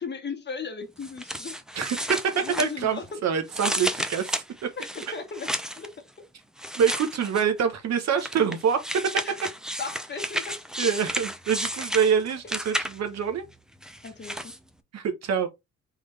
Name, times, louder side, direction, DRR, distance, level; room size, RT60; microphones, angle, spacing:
voice 1, 0.0-1.6 2.0-3.2 4.8-5.5 5.8-5.9 9.2-9.3 9.8-10.6 14.0-14.5, left 5 dB, 35° left, 1.3 m, -36 dB
sound 1, 1.0-3.1 3.5-5.9 6.6-7.6 8.2-13.2 13.8-14.6, equal, ahead, 0.6 m, -32 dB
voice 2, 1.7-2.2 2.6-4.7 6.8-8.8 10.8-13.4 14.9-15.5, right 7 dB, 60° right, 1.1 m, -25 dB
3.8 x 3.3 x 3.3 m
cardioid pair, 90°, 30 cm